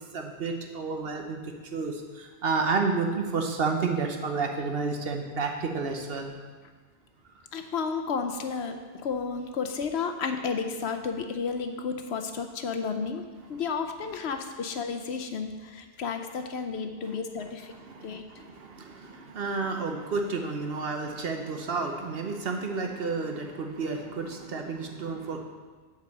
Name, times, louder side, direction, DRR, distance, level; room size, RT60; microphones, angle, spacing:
voice 1, 0.0-1.4 1.7-6.3 17.7-25.4, right 4 dB, 60° right, 3 dB, 1.1 m, -31 dB
voice 2, 7.5-13.2 13.5-17.7 18.0-18.2, left 5 dB, 65° left, 7 dB, 0.9 m, -32 dB
8.1 x 4.8 x 7.0 m, 1.4 s
omnidirectional pair, 1.2 m